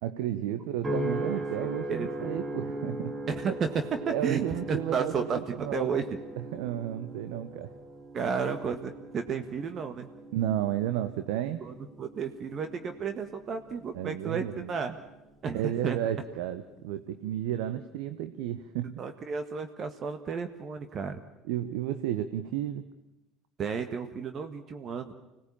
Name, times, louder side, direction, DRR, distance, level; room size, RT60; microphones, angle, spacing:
voice 1, 0.0-3.1 4.1-5.9 6.4-7.7 10.3-11.6 13.9-14.7 15.5-19.0 21.5-22.8, right 11 dB, 75° right, 11 dB, 1.0 m, -32 dB
sound 1, 0.8-15.3 15.8-16.3, right 1 dB, 25° right, 4.1 m, -39 dB
voice 2, 1.6-2.3 3.3-6.0 8.1-10.1 11.6-15.0 15.4-16.0 19.0-21.2 23.6-25.1, right 6 dB, 45° right, 7 dB, 1.7 m, -32 dB
25.5 x 18.0 x 8.8 m, 0.95 s
hypercardioid pair, 75°, 0 cm